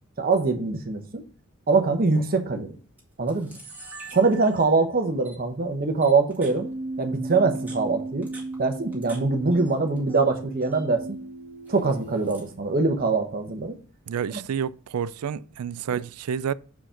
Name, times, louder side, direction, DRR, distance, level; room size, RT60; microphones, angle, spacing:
voice 1, 0.2-1.2 1.7-2.8 3.2-3.5 4.1-6.7 7.0-8.3 8.6-11.0 11.7-13.8, right 3 dB, 40° right, 1.0 m, -23 dB
Camera, 2.2-2.4 3.0-3.1 3.3-4.8 5.3-5.4 6.0-6.6 7.4-9.2 9.5-10.2 10.5-10.9 11.7-12.5, right 3 dB, 10° right, 2.0 m, -46 dB
Keyboard (musical), 6.4-12.4, right 2 dB, 70° left, 3.4 m, -36 dB
voice 2, 14.1-16.5, right 7 dB, 85° right, 0.4 m, -29 dB
5.9 x 4.8 x 5.0 m
head